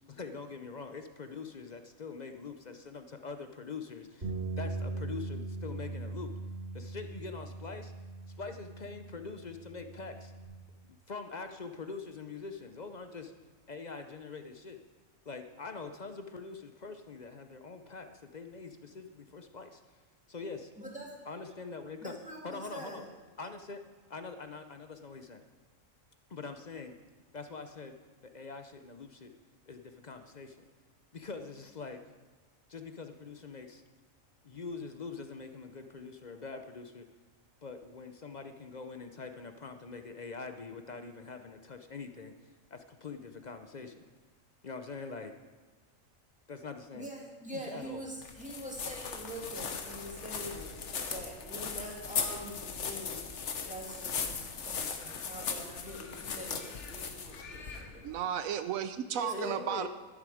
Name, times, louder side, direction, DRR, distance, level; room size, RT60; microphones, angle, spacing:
voice 1, 0.0-4.3 4.6-6.3 6.7-7.9 8.4-10.3 10.9-13.3 13.7-14.8 15.3-19.8 20.3-20.7 21.3-22.2 22.4-23.0 23.4-23.8 24.1-25.4 26.3-26.9 27.3-27.9 28.2-29.3 29.7-30.7 31.1-32.0 32.7-33.8 34.4-37.0 37.6-42.3 42.7-44.0 44.6-45.3 46.5-47.1 47.5-48.0 59.2-59.9, left 4 dB, 45° left, 7 dB, 0.6 m, -43 dB
sound 1, 4.2-10.5, right 3 dB, 55° right, 3.5 m, -40 dB
voice 2, 20.8-21.2 22.0-23.1 46.9-53.2 53.6-58.2 59.4-59.6, right 1 dB, 5° right, -2 dB, 2.3 m, -44 dB
sound 2, 48.2-58.1, left 6 dB, 60° left, 1.3 m, -38 dB
voice 3, 58.0-59.9, right 9 dB, 85° right, 11 dB, 1.0 m, -33 dB
11.5 x 11.0 x 4.9 m, 1.4 s
omnidirectional pair, 1.4 m